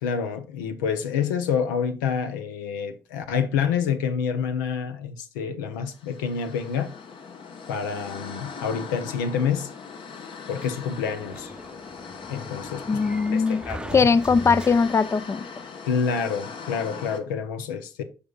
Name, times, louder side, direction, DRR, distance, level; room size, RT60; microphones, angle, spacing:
voice 1, 0.0-6.9 7.7-9.7 10.5-11.5 12.3-13.1 13.3-14.1 15.9-18.0, left 6 dB, 85° left, 0.6 m, -28 dB
sound 1, 5.9-17.2, left 5 dB, 55° left, 1.1 m, -40 dB
Sliding door, 10.6-15.2, right 1 dB, 10° right, 0.7 m, -39 dB
voice 2, 12.9-13.6 13.9-15.5, left 5 dB, 25° left, 0.4 m, -20 dB
9.4 x 5.1 x 2.3 m
hypercardioid pair, 45°, 10 cm